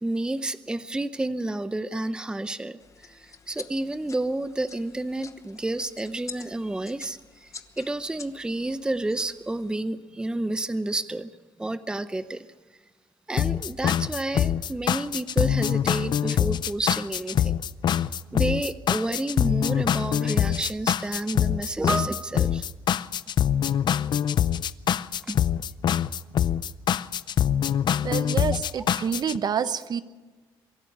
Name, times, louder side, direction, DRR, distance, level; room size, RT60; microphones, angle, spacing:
voice 1, 0.0-11.3 11.6-12.5 13.3-17.6 17.9-22.6 25.2-25.4 28.7-28.8 29.6-29.7, right 2 dB, 10° right, 13 dB, 0.6 m, -30 dB
sound 1, 2.8-9.7, left 5 dB, 35° left, 1.1 m, -47 dB
sound 2, 13.4-29.4, left 9 dB, 55° left, 0.5 m, -24 dB
voice 2, 28.0-30.0, right 7 dB, 50° right, 13 dB, 0.9 m, -28 dB
24.0 x 11.5 x 9.9 m, 1.3 s
cardioid pair, 95°, 9 cm